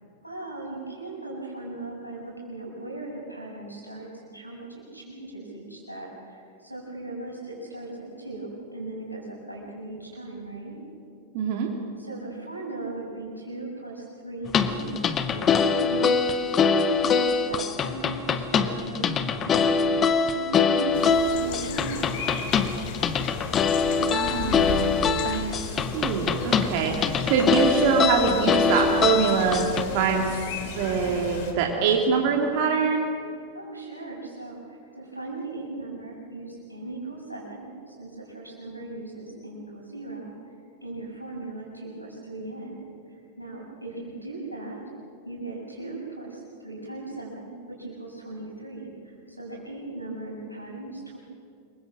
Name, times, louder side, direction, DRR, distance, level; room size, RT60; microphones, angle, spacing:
voice 1, 0.2-10.8 11.5-11.6 12.0-23.0 33.5-40.3 40.8-44.9 45.2-51.2, right 2 dB, 90° right, -4 dB, 6.8 m, -38 dB
voice 2, 11.3-11.7 24.1-24.9 25.2-25.6 25.9-30.3 30.7-33.1, right 5 dB, 45° right, 1 dB, 2.6 m, -24 dB
sound 1, 14.5-29.8, left 5 dB, 25° left, 1.3 m, -23 dB
sound 2, 20.9-31.5, left 5 dB, 50° left, 3.2 m, -36 dB
28.0 x 23.0 x 6.2 m, 2.4 s
figure-of-eight pair, 90°, 0 cm